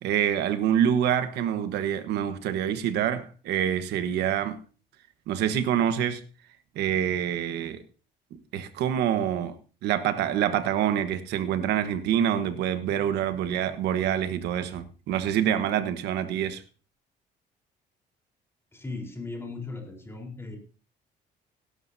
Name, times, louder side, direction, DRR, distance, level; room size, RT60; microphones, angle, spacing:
voice 1, 0.0-4.6 5.3-6.2 6.7-7.8 8.3-9.5 9.8-16.6, right 10 dB, 80° right, 1.3 m, -26 dB
voice 2, 18.7-20.6, left 3 dB, 15° left, 4.0 m, -37 dB
17.0 x 12.0 x 2.8 m
cardioid pair, 110°, 17 cm